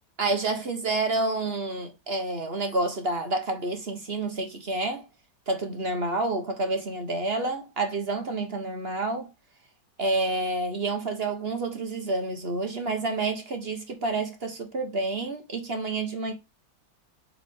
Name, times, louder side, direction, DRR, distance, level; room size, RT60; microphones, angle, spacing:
voice 1, 0.2-5.1 5.5-9.3 10.0-16.3, right 2 dB, 35° right, 1.1 m, -29 dB
7.2 x 4.2 x 3.6 m
omnidirectional pair, 2.1 m